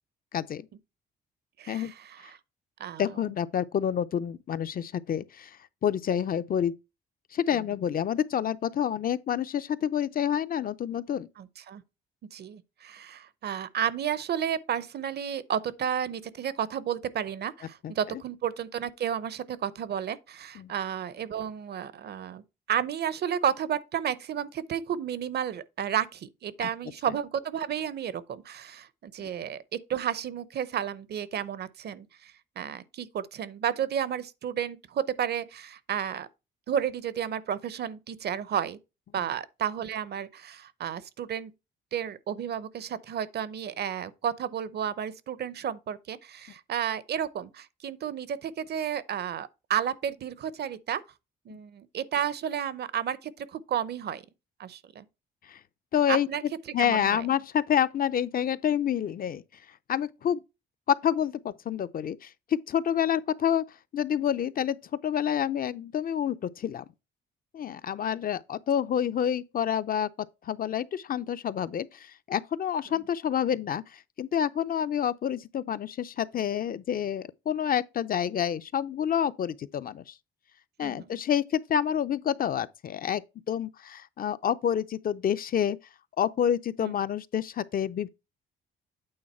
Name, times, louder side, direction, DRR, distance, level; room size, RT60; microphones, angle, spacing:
voice 1, 0.3-0.7 1.7-1.9 3.0-5.6 5.8-6.7 7.3-11.3 17.8-18.2 20.6-20.7 26.6-26.7 29.2-29.3 55.5-55.6 55.9-56.3 56.7-59.4 59.9-60.4 60.9-63.6 63.9-64.8 65.0-66.8 67.5-70.1 70.4-80.1 80.8-83.2 83.5-85.8 86.2-88.1, left 9 dB, 45° left, 0.5 m, -28 dB
voice 2, 1.6-2.4 2.8-3.1 7.5-7.6 11.4-11.8 12.3-22.4 22.7-36.3 36.7-38.8 39.1-41.5 41.9-51.0 51.5-54.2 54.6-55.0 56.1-56.4 56.8-57.3 80.8-81.2 86.8-86.9, right 9 dB, 55° right, 0.7 m, -32 dB
8.7 x 3.9 x 4.3 m
cardioid pair, 90°, 20 cm